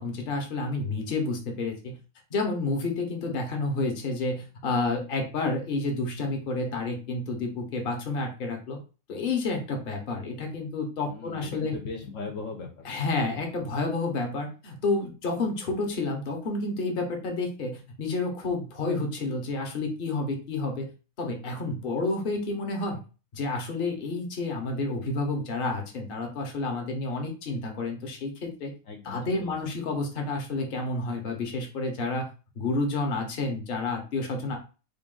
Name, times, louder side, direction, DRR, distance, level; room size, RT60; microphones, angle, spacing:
voice 1, 0.0-2.0 2.3-8.8 9.1-11.7 12.8-20.9 21.2-23.0 23.3-28.7 29.0-32.3 32.6-34.6, left 3 dB, 45° left, 3 dB, 1.0 m, -30 dB
voice 2, 11.1-12.9 28.8-29.7, left 4 dB, 65° left, 1 dB, 1.1 m, -39 dB
3.6 x 2.5 x 3.8 m, 0.34 s
omnidirectional pair, 1.5 m